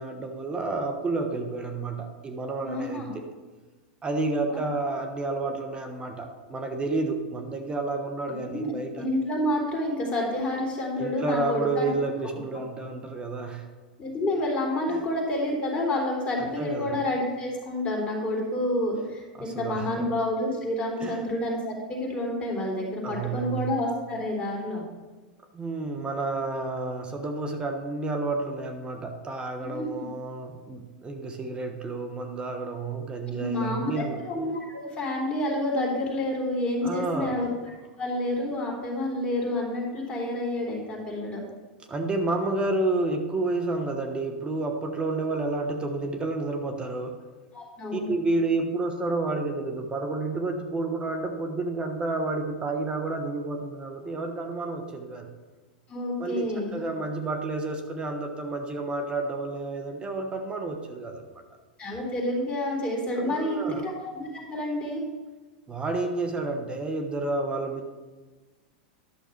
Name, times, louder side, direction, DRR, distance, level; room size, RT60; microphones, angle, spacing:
voice 1, 0.0-3.2 4.0-9.0 11.0-13.7 14.9-15.0 16.4-17.0 19.3-20.1 21.0-21.2 23.0-23.7 25.5-34.2 36.8-37.4 41.9-47.2 47.9-55.3 56.2-61.4 63.2-63.8 65.7-67.9, right 3 dB, 20° right, 5 dB, 1.2 m, -30 dB
voice 2, 2.6-3.1 4.5-4.6 8.5-8.7 9.0-11.9 14.0-24.8 29.7-30.0 33.3-37.5 38.0-41.4 47.5-48.1 55.9-56.7 61.8-65.0, left 1 dB, 20° left, -2 dB, 3.5 m, -29 dB
11.5 x 6.5 x 4.6 m, 1.3 s
hypercardioid pair, 115°, 5 cm